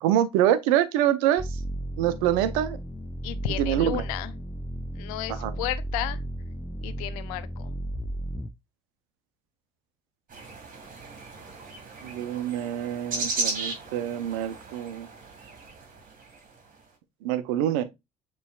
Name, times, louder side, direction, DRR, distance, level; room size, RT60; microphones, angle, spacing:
voice 1, 0.0-1.5 2.0-2.8 3.6-4.0 5.3-5.5 12.0-15.1 17.2-17.8, right 11 dB, 85° right, 0.6 m, -25 dB
sound 1, 1.4-8.5, right 1 dB, 5° left, 0.5 m, -34 dB
voice 2, 3.2-4.3 5.0-6.2 6.8-7.7, left 14 dB, 85° left, 0.5 m, -33 dB
sound 2, 10.3-16.5, right 3 dB, 50° right, 2.1 m, -36 dB
6.8 x 3.1 x 2.3 m
hypercardioid pair, 65°, 18 cm